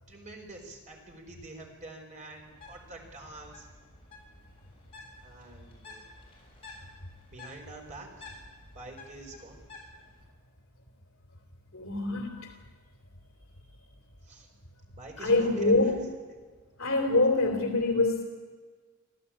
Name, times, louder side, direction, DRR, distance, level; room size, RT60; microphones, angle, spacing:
voice 1, 0.1-3.7 5.2-6.0 7.2-8.3 8.7-9.6 14.2-14.5 14.9-15.7, right 2 dB, 35° right, 2 dB, 4.8 m, -46 dB
Bird, 2.4-10.2, left 2 dB, 25° left, 7.5 m, -51 dB
voice 2, 11.7-12.5 15.2-16.0 16.8-18.2, left 2 dB, 65° left, 3 dB, 3.1 m, -25 dB
25.5 x 15.0 x 8.7 m, 1.5 s
head